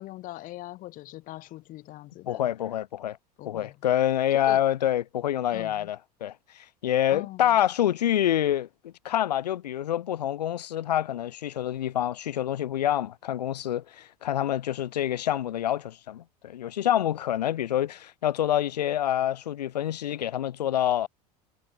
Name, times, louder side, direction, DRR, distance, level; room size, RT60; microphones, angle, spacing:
voice 1, 0.0-2.5 3.4-3.8 4.3-4.6 5.5-5.9 7.1-7.5, left 17 dB, 40° left, 0.7 m, -41 dB
voice 2, 2.3-3.2 3.4-21.1, left 11 dB, 75° left, 0.8 m, -27 dB
figure-of-eight pair, 75°, 21 cm